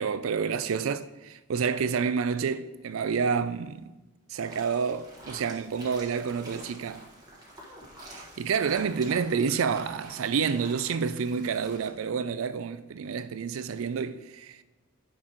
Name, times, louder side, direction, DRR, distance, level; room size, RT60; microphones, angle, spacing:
voice 1, 0.0-3.9 4.3-7.1 8.1-14.6, right 6 dB, 80° right, 0.4 m, -29 dB
sound 1, 4.4-11.9, right 1 dB, 20° right, 1.5 m, -48 dB
10.0 x 6.4 x 3.0 m
head